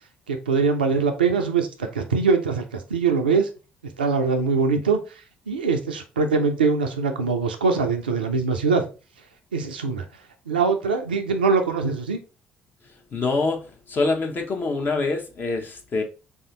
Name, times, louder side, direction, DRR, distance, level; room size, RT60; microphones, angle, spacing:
voice 1, 0.3-3.5 4.0-5.0 5.5-8.9 9.5-10.1 10.5-12.2, right 4 dB, 85° right, 0.4 m, -22 dB
voice 2, 13.1-16.0, left 3 dB, 40° left, 0.9 m, -25 dB
3.5 x 2.7 x 3.7 m
figure-of-eight pair, 50°, 5 cm